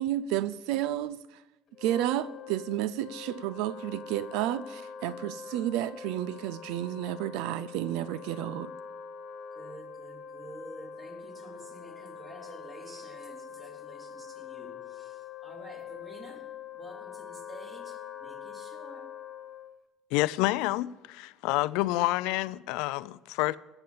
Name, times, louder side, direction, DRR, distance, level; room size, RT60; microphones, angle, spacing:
voice 1, 0.0-1.4 1.8-8.7, right 13 dB, 85° right, 0.4 m, -31 dB
Wind instrument woodwind instrument, 1.7-19.8, left 7 dB, 50° left, 1.3 m, -44 dB
voice 2, 9.5-19.1, right 1 dB, 25° right, 3.1 m, -49 dB
voice 3, 20.1-23.6, left 18 dB, 90° left, 0.4 m, -28 dB
17.0 x 7.0 x 7.1 m
cardioid pair, 120°, 0 cm